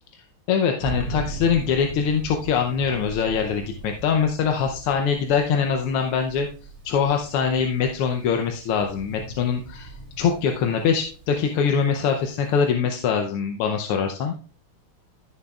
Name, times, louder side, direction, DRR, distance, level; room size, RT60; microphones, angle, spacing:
voice 1, 0.1-6.5 6.9-14.3, left 6 dB, 90° left, 3 dB, 1.7 m, -23 dB
Thunder, 0.8-12.7, right 2 dB, 85° right, 3.7 m, -39 dB
14.0 x 6.9 x 2.4 m, 0.40 s
omnidirectional pair, 2.4 m